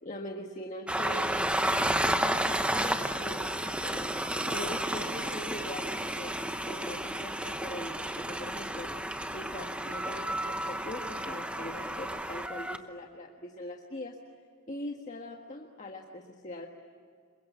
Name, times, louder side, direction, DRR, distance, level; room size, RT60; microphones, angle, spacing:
voice 1, 0.0-6.3 6.7-8.9 9.3-14.2 14.7-16.7, left 1 dB, 35° left, 1 dB, 1.6 m, -42 dB
Train, 0.9-12.8, right 1 dB, 5° right, 0.9 m, -32 dB
27.5 x 23.5 x 8.3 m, 2.2 s
head